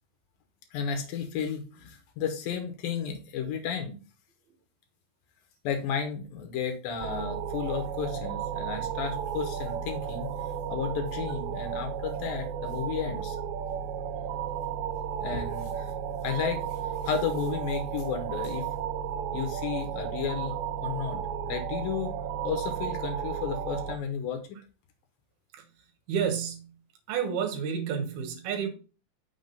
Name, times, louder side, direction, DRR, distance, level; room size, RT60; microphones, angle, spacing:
voice 1, 0.7-4.0 5.6-10.3 10.7-13.4 15.2-15.9 16.2-16.6 17.0-18.7 19.3-20.5 20.8-21.2 21.4-22.1 22.4-24.4, left 7 dB, 70° left, 5 dB, 2.4 m, -33 dB
sound 1, 7.0-24.0, right 8 dB, 85° right, 2.7 m, -33 dB
voice 2, 26.1-26.7 27.1-28.7, right 7 dB, 70° right, 6 dB, 2.8 m, -30 dB
6.2 x 3.7 x 5.2 m, 0.34 s
omnidirectional pair, 5.0 m